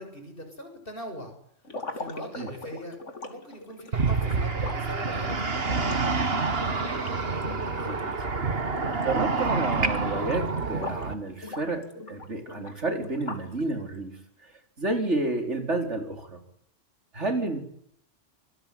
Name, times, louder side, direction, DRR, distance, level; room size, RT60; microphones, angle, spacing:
voice 1, 0.0-1.3 1.9-3.0 3.3-5.9, left 1 dB, 45° left, 5 dB, 7.6 m, -41 dB
sound 1, 1.6-8.3 8.6-9.1 9.4-11.1 11.4-13.6, left 3 dB, 75° left, 3.1 m, -40 dB
sound 2, 3.9-11.1, right 4 dB, 50° right, 2.0 m, -28 dB
voice 2, 9.0-14.5 14.8-16.4 17.1-17.6, right 2 dB, 70° right, 5 dB, 5.0 m, -30 dB
27.5 x 22.5 x 9.6 m, 0.70 s
omnidirectional pair, 1.3 m